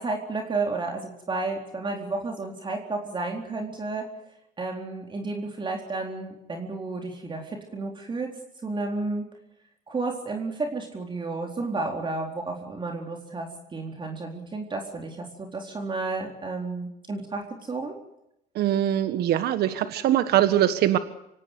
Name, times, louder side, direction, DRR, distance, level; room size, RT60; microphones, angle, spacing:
voice 1, 0.0-4.0 4.6-8.3 8.6-9.3 9.9-17.4 17.7-17.9, right 3 dB, 30° right, 2 dB, 4.2 m, -32 dB
voice 2, 18.5-21.0, right 12 dB, 70° right, 11 dB, 1.5 m, -22 dB
26.5 x 17.5 x 8.2 m, 0.83 s
cardioid pair, 110°, 17 cm